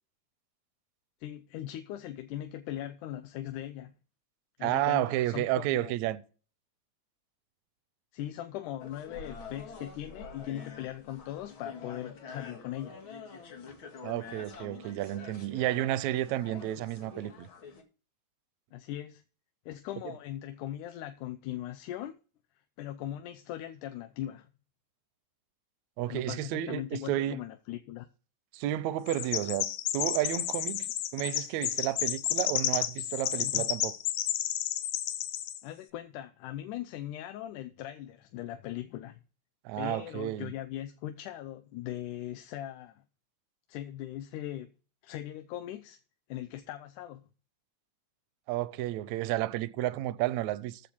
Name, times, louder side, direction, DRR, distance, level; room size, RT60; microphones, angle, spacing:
voice 1, 1.2-3.9 4.6-5.9 8.1-13.0 18.7-19.2 19.7-22.2 22.8-24.5 26.1-28.1 33.4-33.6 35.6-39.2 39.8-43.0 43.7-44.7 45.0-46.0 46.3-47.3, left 12 dB, 85° left, 2.3 m, -39 dB
voice 2, 4.6-6.2 14.0-17.5 26.0-27.4 28.5-33.9 39.7-40.5 48.5-50.8, right 14 dB, 75° right, 2.0 m, -31 dB
sound 1, 8.8-17.8, left 5 dB, 45° left, 2.4 m, -47 dB
Chirp tweet, 29.1-35.6, left 12 dB, 70° left, 1.8 m, -31 dB
14.5 x 6.8 x 4.6 m
omnidirectional pair, 3.5 m